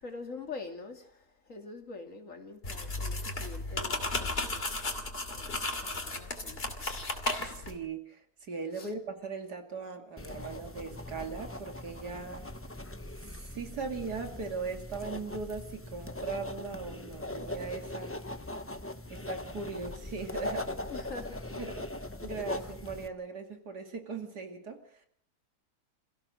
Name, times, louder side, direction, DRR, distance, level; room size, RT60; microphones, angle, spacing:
voice 1, 0.0-4.7 5.3-7.0 7.5-7.7 8.7-8.9 20.9-21.7, left 4 dB, 55° left, 2.8 m, -45 dB
sound 1, 2.6-7.8, left 2 dB, 40° left, 2.9 m, -34 dB
voice 2, 7.4-12.5 13.3-18.2 19.1-20.8 21.6-21.9 22.2-25.1, right 4 dB, 85° right, 3.1 m, -39 dB
sound 2, 10.2-23.1, left 1 dB, 10° left, 0.7 m, -40 dB
27.5 x 16.0 x 6.3 m
omnidirectional pair, 1.7 m